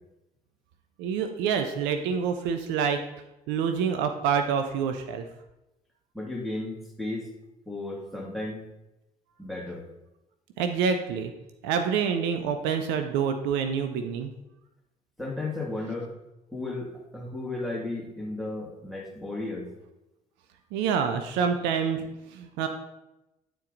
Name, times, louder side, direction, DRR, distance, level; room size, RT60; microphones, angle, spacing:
voice 1, 1.0-3.0 3.5-5.2 10.6-11.3 11.6-14.3 20.7-22.7, right 6 dB, 70° right, 7 dB, 0.6 m, -27 dB
voice 2, 6.1-7.3 7.7-8.6 9.4-9.8 15.2-16.1 16.5-19.7, left 2 dB, ahead, 0 dB, 2.4 m, -34 dB
9.9 x 4.5 x 3.9 m, 0.94 s
hypercardioid pair, 55°, 19 cm